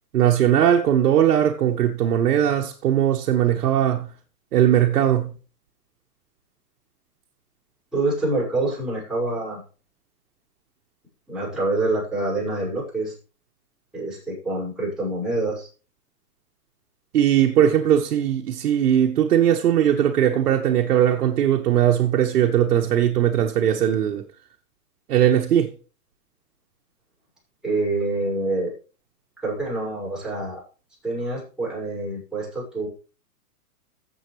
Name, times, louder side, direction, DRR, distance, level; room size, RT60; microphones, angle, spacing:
voice 1, 0.1-4.1 4.5-5.3 17.1-24.2 25.1-25.7, right 10 dB, 70° right, 1.5 m, -19 dB
voice 2, 7.9-9.6 11.3-13.1 13.9-15.7 27.6-28.7 29.4-30.6 31.0-32.9, right 2 dB, ahead, 6.1 m, -26 dB
14.5 x 7.6 x 3.3 m
hypercardioid pair, 150°, 46 cm